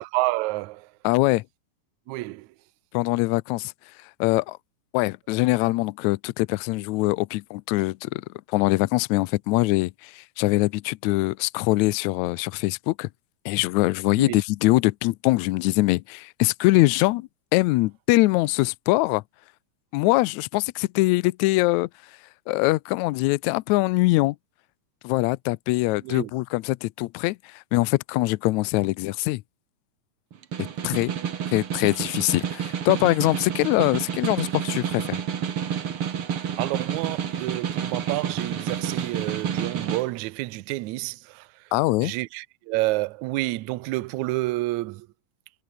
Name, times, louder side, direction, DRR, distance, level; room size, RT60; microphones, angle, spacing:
voice 1, 0.0-0.9 2.1-2.5 14.2-14.4 26.0-26.3 36.6-41.5 42.0-45.1, right 20 dB, 75° right, 1.8 m, -29 dB
voice 2, 1.0-1.4 2.9-3.7 4.2-4.6 4.9-13.1 13.4-19.2 19.9-21.9 22.5-24.4 25.0-29.4 30.8-31.1 31.5-35.2 41.7-42.1, left 20 dB, 80° left, 1.7 m, -23 dB
Snare drum, 30.3-40.1, right 8 dB, 45° right, 2.2 m, -29 dB
omnidirectional pair, 3.9 m